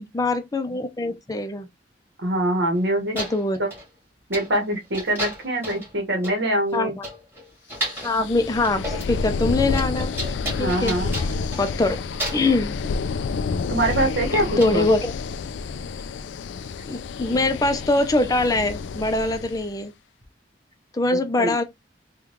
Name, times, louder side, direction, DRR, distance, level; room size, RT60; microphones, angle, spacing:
voice 1, 0.0-1.7 3.1-3.6 6.7-7.0 8.0-12.0 12.3-12.8 14.6-15.1 16.8-19.9 20.9-21.6, left 2 dB, 20° left, 0.4 m, -23 dB
voice 2, 2.2-3.2 3.6-3.7 4.3-6.9 10.6-11.1 13.7-14.9 21.4-21.5, right 1 dB, 70° right, 1.2 m, -24 dB
sound 1, 2.7-2.8 3.1-3.9 4.3-4.6 4.9-5.9 6.2-6.4 6.7-6.8 7.0-8.2 8.6-9.2 9.4-11.8 12.2-12.6 13.9-14.0 14.6-14.7, right 1 dB, 15° right, 1.7 m, -33 dB
sound 2, 7.9-19.7, left 4 dB, 85° left, 0.3 m, -29 dB
3.6 x 2.3 x 3.0 m
head